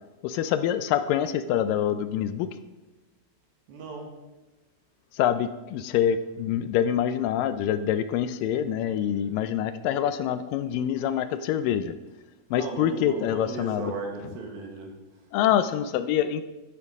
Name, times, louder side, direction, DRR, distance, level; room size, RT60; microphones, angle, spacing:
voice 1, 0.2-2.5 5.1-11.9 12.5-13.9 15.3-16.4, left 10 dB, 80° left, 11 dB, 2.1 m, -25 dB
voice 2, 3.7-4.1 11.0-11.2 12.5-15.3, right 3 dB, 85° right, 1 dB, 3.5 m, -37 dB
12.5 x 10.0 x 3.6 m, 1.1 s
omnidirectional pair, 4.1 m